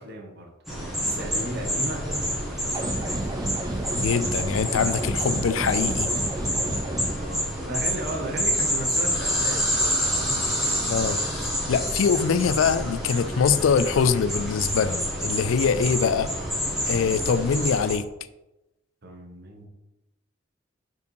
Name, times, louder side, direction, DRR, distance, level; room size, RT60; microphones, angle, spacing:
voice 1, 0.0-3.2 7.1-11.2 16.9-17.2 19.0-19.7, right 1 dB, 55° right, 1 dB, 1.2 m, -36 dB
sound 1, 0.7-17.9, equal, ahead, 1.9 m, -28 dB
sound 2, 2.7-7.1, right 1 dB, 20° right, 0.4 m, -31 dB
voice 2, 4.0-6.1 10.9-11.2 11.7-16.3 16.9-18.1, left 6 dB, 85° left, 14 dB, 0.4 m, -23 dB
5.4 x 4.6 x 4.6 m, 0.97 s
head